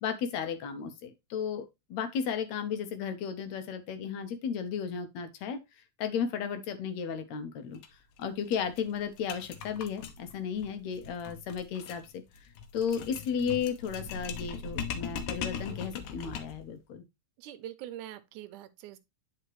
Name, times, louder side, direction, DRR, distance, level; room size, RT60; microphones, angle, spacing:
voice 1, 0.0-7.8 8.2-17.1, left 7 dB, 70° left, 2.0 m, -34 dB
sound 1, 7.8-7.9 8.2-8.3 8.5-16.7, left 6 dB, 90° left, 2.4 m, -40 dB
voice 2, 17.4-19.0, right 12 dB, 85° right, 2.2 m, -43 dB
9.8 x 4.9 x 3.1 m
omnidirectional pair, 3.5 m